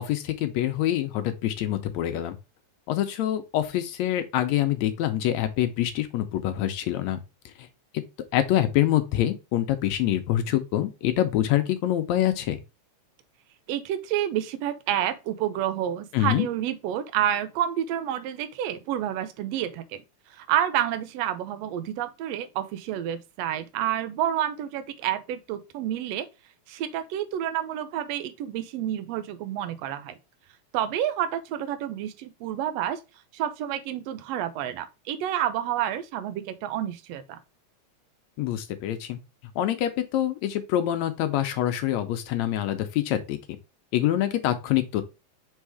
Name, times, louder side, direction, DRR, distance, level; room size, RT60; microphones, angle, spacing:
voice 1, 0.0-2.4 2.9-7.2 8.3-12.6 16.1-16.5 38.4-39.2 39.6-43.4 43.9-45.0, left 12 dB, 75° left, 1.8 m, -25 dB
voice 2, 13.7-20.0 20.3-26.3 26.7-30.2 30.7-33.0 33.3-37.4, right 11 dB, 70° right, 1.7 m, -29 dB
5.5 x 3.6 x 4.8 m
omnidirectional pair, 3.5 m